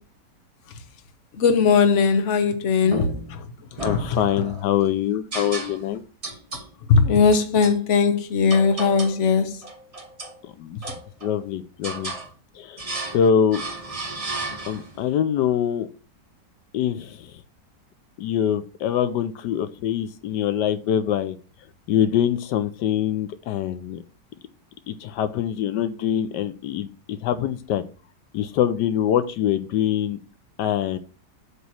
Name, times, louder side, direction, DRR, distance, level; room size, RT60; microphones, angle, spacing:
voice 1, 1.3-4.4 6.9-9.6, left 5 dB, 50° left, 1.1 m, -20 dB
sound 1, 2.8-3.4 3.8-4.7 5.3-6.0 6.2-6.7 7.3-7.8 8.5-9.2 9.6-10.4 10.8-11.4 11.8-12.3 12.8-13.2 13.5-15.0, right 2 dB, 25° right, 0.9 m, -33 dB
voice 2, 3.8-6.0 10.6-10.9 11.2-12.1 12.5-12.8 13.1-13.6 14.6-15.9 16.7-17.3 18.2-21.4 21.9-24.0 24.9-27.8 28.3-30.2 30.6-31.0, left 9 dB, 80° left, 1.2 m, -24 dB
8.2 x 3.0 x 6.2 m
omnidirectional pair, 1.8 m